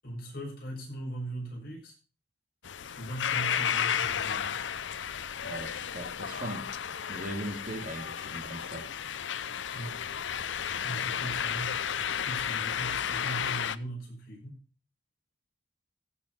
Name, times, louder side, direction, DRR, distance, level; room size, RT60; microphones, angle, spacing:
voice 1, 0.0-1.9 3.0-4.6 9.7-10.0 10.8-14.6, right 1 dB, 55° left, -2 dB, 7.0 m, -39 dB
sound 1, 2.6-13.8, left 8 dB, 85° left, 0.6 m, -33 dB
voice 2, 5.4-6.7 7.1-8.9, right 1 dB, 45° right, 5 dB, 2.4 m, -39 dB
15.0 x 7.3 x 5.5 m, 0.36 s
head